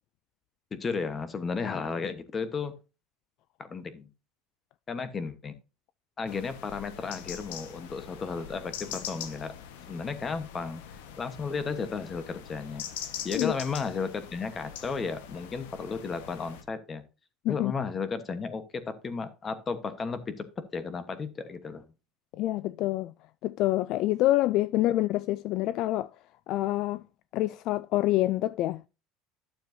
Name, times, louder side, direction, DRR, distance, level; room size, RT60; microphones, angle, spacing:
voice 1, 0.7-2.7 3.6-4.1 4.9-5.5 6.2-9.5 9.9-10.8 11.2-12.9 13.2-17.0 17.5-21.9, left 5 dB, 25° left, 1.1 m, -34 dB
sound 1, 6.3-16.6, left 9 dB, 90° left, 1.3 m, -43 dB
voice 2, 22.3-23.1 23.4-26.1 26.5-27.0 27.3-28.9, left 15 dB, 55° left, 0.3 m, -27 dB
12.0 x 7.1 x 2.7 m
cardioid pair, 140°, 0 cm